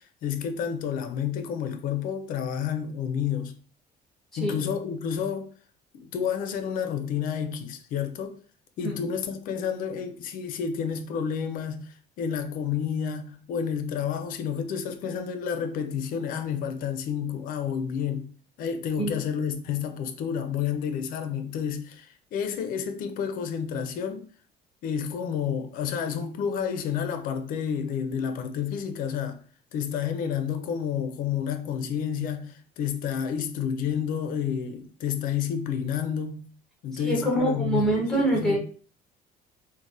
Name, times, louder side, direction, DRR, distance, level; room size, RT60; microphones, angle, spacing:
voice 1, 0.0-3.6 4.4-5.5 5.9-8.4 8.8-18.3 18.6-24.2 24.8-29.4 29.7-36.5 36.8-38.6, left 7 dB, 55° left, 0.4 m, -30 dB
voice 2, 37.0-38.6, right 1 dB, ahead, 0.9 m, -25 dB
3.2 x 2.1 x 2.6 m
cardioid pair, 160°, 17 cm